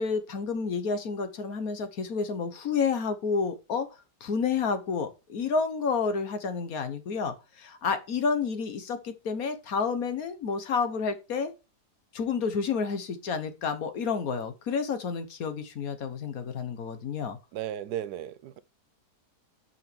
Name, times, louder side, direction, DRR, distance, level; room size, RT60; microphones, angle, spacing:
voice 1, 0.0-3.9 4.2-11.5 12.1-17.4, left 5 dB, 65° left, 1.5 m, -30 dB
voice 2, 17.5-18.6, right 11 dB, 80° right, 1.2 m, -35 dB
5.8 x 5.2 x 6.0 m
omnidirectional pair, 1.7 m